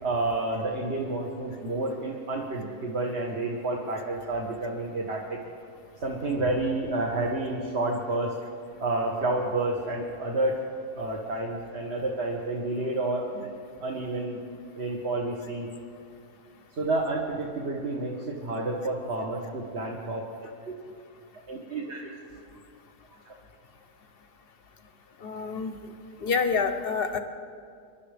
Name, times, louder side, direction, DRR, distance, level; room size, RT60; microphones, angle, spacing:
voice 1, 0.0-5.4 6.0-8.4 8.8-10.6 10.9-13.5 13.8-14.4 14.7-15.7 16.8-20.2 20.7-20.8 21.5-22.1 23.1-23.3, right 2 dB, 45° right, -1 dB, 1.4 m, -30 dB
voice 2, 25.2-25.8 26.2-27.2, left 5 dB, 50° left, 8 dB, 0.8 m, -27 dB
25.5 x 11.5 x 3.4 m, 2.4 s
omnidirectional pair, 1.6 m